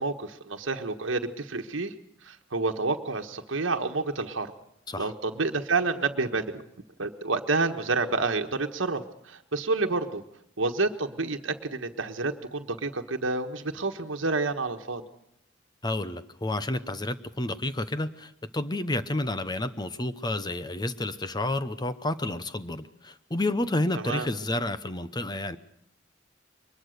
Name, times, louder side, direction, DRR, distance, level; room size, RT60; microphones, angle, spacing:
voice 1, 0.0-1.9 2.2-4.5 5.0-6.6 7.0-10.2 10.6-15.0 24.0-24.3, right 3 dB, 75° right, 5 dB, 1.4 m, -29 dB
voice 2, 15.8-25.6, left 1 dB, 20° left, 12 dB, 0.9 m, -30 dB
23.0 x 20.5 x 6.6 m, 0.75 s
head